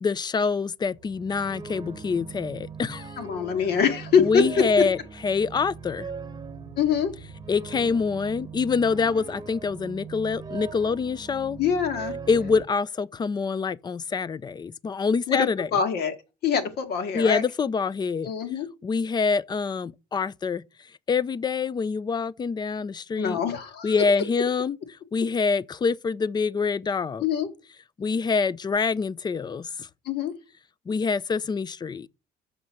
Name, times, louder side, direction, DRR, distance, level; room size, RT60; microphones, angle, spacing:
voice 1, 0.0-3.2 4.2-5.0 5.2-6.1 7.5-11.6 12.3-15.7 17.1-18.3 18.8-20.6 21.1-23.4 23.8-24.8 25.1-27.2 28.0-29.9 30.9-32.1, left 5 dB, 25° left, 0.4 m, -26 dB
sound 1, 0.9-12.6, right 5 dB, 25° right, 1.2 m, -40 dB
voice 2, 3.2-4.4 6.8-7.1 11.6-12.2 15.3-15.5 15.7-16.2 16.4-17.4 18.2-18.7 23.2-23.9 27.2-27.5 30.1-30.3, left 7 dB, 75° left, 2.0 m, -24 dB
6.5 x 5.6 x 6.1 m
cardioid pair, 110°, 17 cm